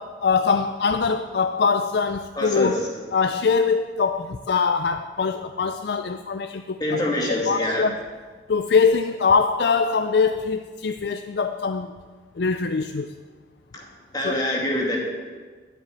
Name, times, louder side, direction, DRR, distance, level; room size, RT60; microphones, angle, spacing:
voice 1, 0.0-2.8 3.1-7.0 7.4-8.0 8.5-11.9 12.4-13.1 14.2-14.4, left 5 dB, 60° left, 8 dB, 0.4 m, -23 dB
voice 2, 2.4-2.8 6.8-7.8 13.7-13.9 14.1-15.0, left 1 dB, 20° left, -2 dB, 2.3 m, -25 dB
10.0 x 8.1 x 9.4 m, 1.5 s
head